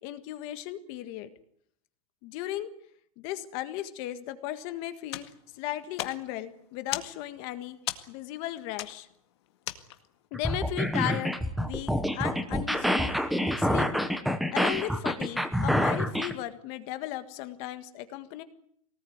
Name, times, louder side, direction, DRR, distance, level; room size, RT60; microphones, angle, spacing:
voice 1, 0.0-1.3 2.2-2.7 3.2-5.3 5.5-7.8 8.1-9.1 10.3-11.3 11.6-14.1 14.5-18.4, left 14 dB, 30° left, 11 dB, 1.7 m, -36 dB
sound 1, 5.0-10.3, left 14 dB, 50° left, 2.0 m, -40 dB
sound 2, 10.3-16.3, equal, ahead, 1.1 m, -27 dB
23.5 x 19.0 x 9.5 m, 0.68 s
supercardioid pair, 180°, 18 cm